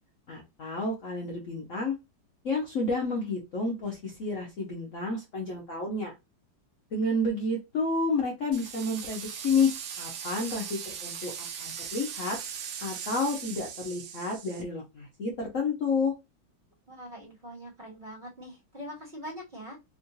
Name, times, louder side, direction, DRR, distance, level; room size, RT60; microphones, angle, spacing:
voice 1, 0.3-1.9 2.4-6.1 6.9-12.4 12.8-16.1, left 3 dB, 55° left, -2 dB, 1.0 m, -30 dB
sound 1, 8.5-14.6, right 8 dB, 80° right, 1.4 m, -39 dB
voice 2, 16.9-19.8, equal, 25° right, -3 dB, 1.5 m, -43 dB
3.6 x 2.4 x 2.7 m, 0.23 s
omnidirectional pair, 2.0 m